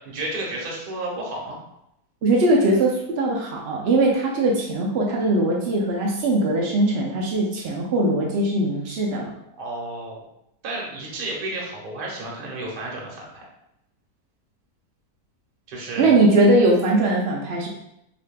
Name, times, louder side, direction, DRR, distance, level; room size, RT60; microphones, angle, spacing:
voice 1, 0.0-1.6 9.6-10.2 10.6-13.4 15.7-16.1, right 2 dB, 45° right, -2 dB, 0.8 m, -32 dB
voice 2, 2.2-9.3 16.0-17.7, right 2 dB, 90° right, -2 dB, 0.5 m, -20 dB
4.9 x 2.6 x 2.2 m, 0.81 s
omnidirectional pair, 1.8 m